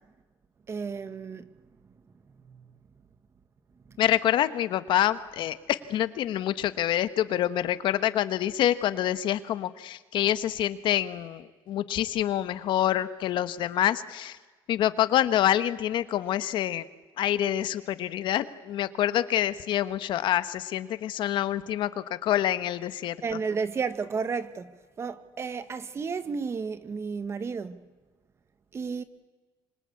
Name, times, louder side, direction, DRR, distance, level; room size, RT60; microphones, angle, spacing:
voice 1, 0.7-1.4 2.5-2.6 23.2-24.7 25.0-27.9 28.7-29.0, right 5 dB, 30° right, 1.4 m, -32 dB
voice 2, 4.0-14.4 14.7-16.8 17.2-23.4, left 12 dB, 60° left, 1.2 m, -26 dB
26.0 x 25.5 x 8.6 m
cardioid pair, 145°, 9 cm